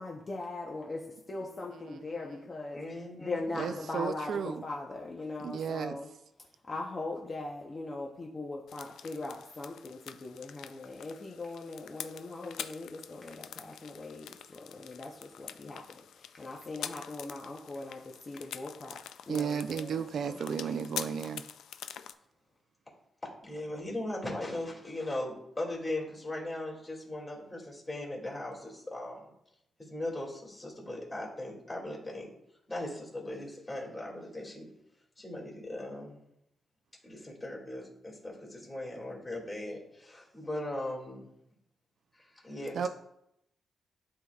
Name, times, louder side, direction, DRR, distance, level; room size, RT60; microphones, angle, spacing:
voice 1, 0.0-6.1 6.7-20.4, left 2 dB, 35° left, -1 dB, 0.8 m, -40 dB
voice 2, 2.7-3.5 20.5-20.8 23.4-29.3 29.8-32.3 32.7-34.7 35.2-36.2 37.0-41.3 42.1-42.9, left 1 dB, 20° left, -3 dB, 2.3 m, -39 dB
voice 3, 3.6-4.6 5.4-6.0 19.3-21.4 42.7-42.9, right 7 dB, 70° right, 9 dB, 0.3 m, -34 dB
sound 1, 8.7-22.1, left 9 dB, 90° left, 0.3 m, -46 dB
11.0 x 3.9 x 2.3 m, 0.80 s
cardioid pair, 90°, 0 cm